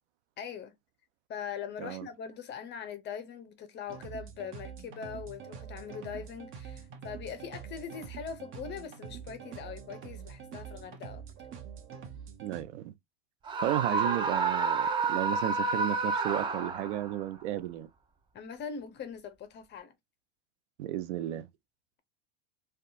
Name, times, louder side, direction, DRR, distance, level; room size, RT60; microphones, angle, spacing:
voice 1, 0.4-0.7 1.3-11.2 18.3-19.9, left 7 dB, 30° left, 0.6 m, -41 dB
sound 1, 3.9-12.6, right 7 dB, 35° right, 0.8 m, -45 dB
voice 2, 12.4-12.9 13.6-17.9 20.8-21.5, right 13 dB, 70° right, 0.5 m, -33 dB
Screaming, 13.5-17.1, right 4 dB, 15° right, 0.3 m, -29 dB
2.6 x 2.3 x 2.5 m
hypercardioid pair, 100°, 35 cm